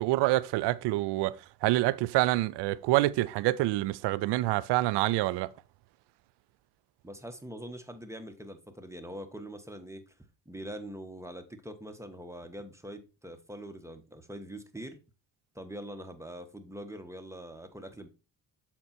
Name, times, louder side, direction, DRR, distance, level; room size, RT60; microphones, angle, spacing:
voice 1, 0.0-5.5, right 17 dB, 80° right, 0.5 m, -27 dB
voice 2, 7.0-10.1 10.4-15.0 15.5-18.1, equal, 5° right, 1.4 m, -43 dB
7.2 x 4.4 x 4.2 m
supercardioid pair, 70°, 40 cm